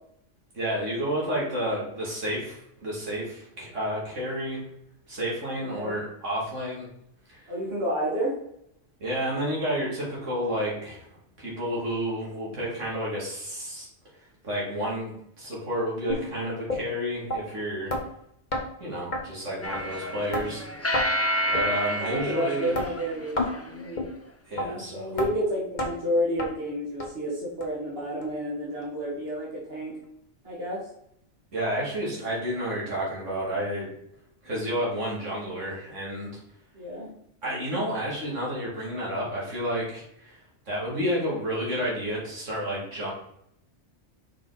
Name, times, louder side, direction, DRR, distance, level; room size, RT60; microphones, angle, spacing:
voice 1, 0.5-4.6 5.1-6.9 7.3-7.5 9.0-11.1 11.4-13.9 14.4-17.9 18.8-20.6 21.5-22.7 24.5-25.2 31.5-33.9 34.4-36.4 37.4-40.4 40.7-43.1, equal, 85° right, -6 dB, 2.9 m, -30 dB
voice 2, 7.5-8.3 22.1-24.0 24.5-30.0 30.4-30.9 36.7-37.1, equal, 55° right, -5 dB, 2.2 m, -30 dB
sound 1, 16.1-16.2 16.7-16.8 17.3-17.4 17.9-18.0 18.5-18.6 19.1-19.2 19.7-19.8 20.3-20.5 20.9-21.1 21.5-21.7 22.2-22.3 22.7-22.9 23.4-23.5 24.0-24.1 24.6-24.7 25.2-25.3 25.8-25.9 26.4-26.5 27.0-27.1 27.6-27.7 28.2-28.3 28.8-28.9, left 1 dB, 40° left, 1.2 m, -28 dB
sound 2, 19.6-23.9, equal, 20° left, 0.4 m, -30 dB
6.2 x 4.7 x 4.1 m, 0.74 s
omnidirectional pair, 1.2 m